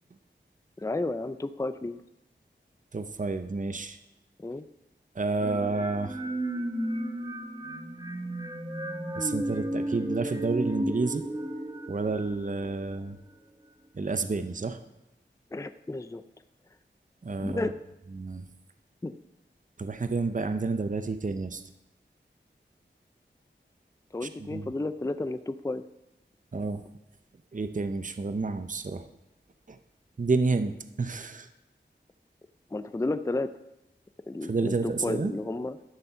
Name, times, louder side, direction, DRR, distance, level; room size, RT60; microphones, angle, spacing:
voice 1, 0.8-2.0 4.4-4.6 12.6-12.7 15.5-16.2 17.4-17.7 19.0-19.2 24.1-25.8 32.7-33.5 34.3-35.8, left 2 dB, 15° left, 11 dB, 0.4 m, -32 dB
voice 2, 2.9-4.0 5.2-6.2 9.2-11.2 11.9-13.2 14.0-14.8 17.2-17.7 18.1-18.4 19.8-21.6 24.4-24.7 26.5-26.8 27.5-29.0 29.7-29.8 30.2-31.5 34.5-35.3, right 3 dB, 40° right, 9 dB, 0.6 m, -30 dB
sound 1, 5.4-13.1, right 1 dB, 20° right, 1.2 m, -34 dB
12.0 x 6.8 x 5.6 m, 0.93 s
wide cardioid pair, 55°, 20 cm